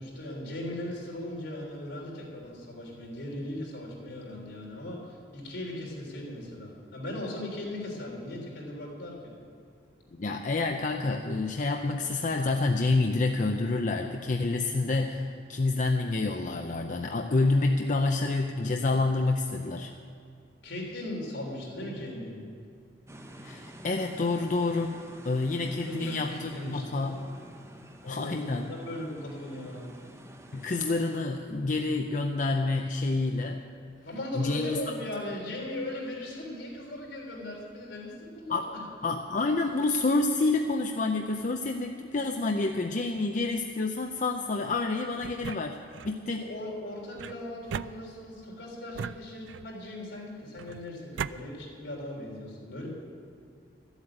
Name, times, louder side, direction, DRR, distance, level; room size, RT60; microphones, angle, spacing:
voice 1, 0.0-9.3 20.6-22.4 25.6-27.1 28.0-29.9 34.0-38.6 46.3-52.9, left 1 dB, 75° left, -3 dB, 3.5 m, -38 dB
voice 2, 10.2-19.9 23.4-25.0 25.2-27.2 28.1-28.7 30.5-33.6 34.3-34.8 38.5-38.7 39.0-45.8 46.0-46.5, left 3 dB, 45° left, 3 dB, 0.6 m, -28 dB
sound 1, 23.1-31.2, right 1 dB, 15° right, 0.8 m, -48 dB
sound 2, 45.2-46.2 47.2-48.4 48.9-49.8 50.6-51.4, right 7 dB, 75° right, 0.3 m, -38 dB
13.0 x 8.2 x 8.8 m, 2.2 s
head